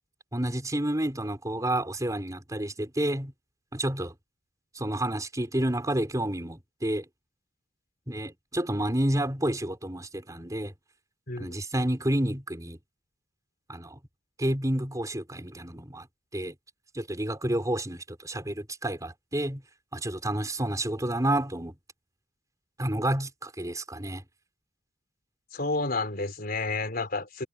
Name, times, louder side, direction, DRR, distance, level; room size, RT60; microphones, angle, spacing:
voice 1, 0.3-3.3 3.7-4.1 4.7-7.0 8.1-10.7 11.4-12.8 13.7-14.0 14.4-16.1 16.3-16.5 16.9-19.6 19.9-21.8 22.8-24.2, right 1 dB, 20° right, 4.6 m, -30 dB
voice 2, 25.5-27.5, left 3 dB, 50° left, 4.1 m, -30 dB
head